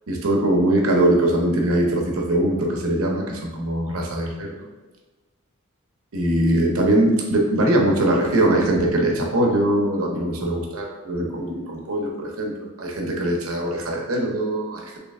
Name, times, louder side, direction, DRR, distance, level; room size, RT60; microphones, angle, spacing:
voice 1, 0.1-4.7 6.1-12.5 12.8-15.0, right 1 dB, 80° right, 0 dB, 0.8 m, -21 dB
3.1 x 3.1 x 3.5 m, 1.2 s
head